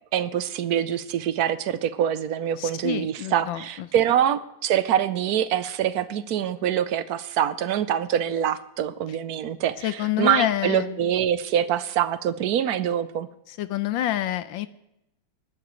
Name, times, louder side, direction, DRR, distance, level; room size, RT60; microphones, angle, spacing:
voice 1, 0.1-13.3, right 10 dB, 65° right, 14 dB, 1.0 m, -25 dB
voice 2, 2.6-3.6 9.8-11.0 13.6-14.7, left 12 dB, 75° left, 13 dB, 1.4 m, -27 dB
21.0 x 12.0 x 3.2 m, 0.86 s
omnidirectional pair, 2.2 m